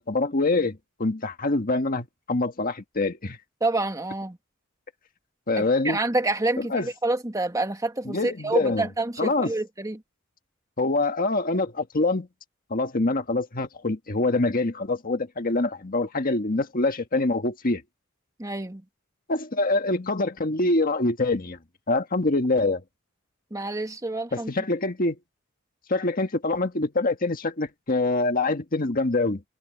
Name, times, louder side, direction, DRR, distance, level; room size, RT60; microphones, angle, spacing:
voice 1, 0.0-3.4 5.5-6.0 6.6-6.9 8.0-8.9 9.2-9.5 10.8-12.3 12.7-17.8 19.3-21.6 21.9-22.8 24.3-25.2 25.9-29.4, left 2 dB, 45° left, 1.5 m, -25 dB
voice 2, 3.6-4.4 5.6-10.0 18.4-18.8 23.5-24.5, right 2 dB, 15° right, 1.8 m, -28 dB
head